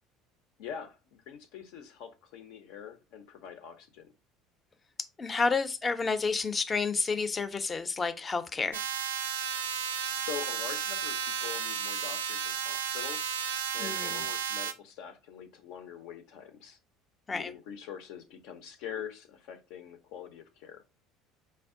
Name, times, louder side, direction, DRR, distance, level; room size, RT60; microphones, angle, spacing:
voice 1, 0.6-4.1 10.1-13.4 13.7-16.8 17.3-20.8, left 8 dB, 65° left, 0.7 m, -44 dB
voice 2, 5.2-8.8 13.8-14.2 17.3-17.5, left 4 dB, 25° left, 0.6 m, -30 dB
sound 1, 8.7-14.7, right 7 dB, 80° right, 0.4 m, -33 dB
4.3 x 2.4 x 3.5 m
figure-of-eight pair, 65°, 0 cm